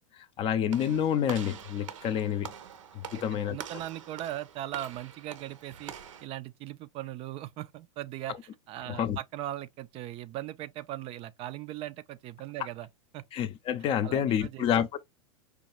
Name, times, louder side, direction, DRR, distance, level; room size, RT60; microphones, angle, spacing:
voice 1, 0.2-2.5 2.9-3.6 8.9-9.2 13.3-15.0, left 9 dB, 35° left, 0.5 m, -28 dB
Walk footsteps / Slam, 0.7-6.3, right 8 dB, 75° right, 0.7 m, -45 dB
voice 2, 3.1-5.9 6.2-8.3 8.7-12.9 13.1-13.2 14.0-14.7, right 13 dB, 35° right, 0.4 m, -39 dB
5.0 x 2.3 x 2.9 m
hypercardioid pair, 100°, 17 cm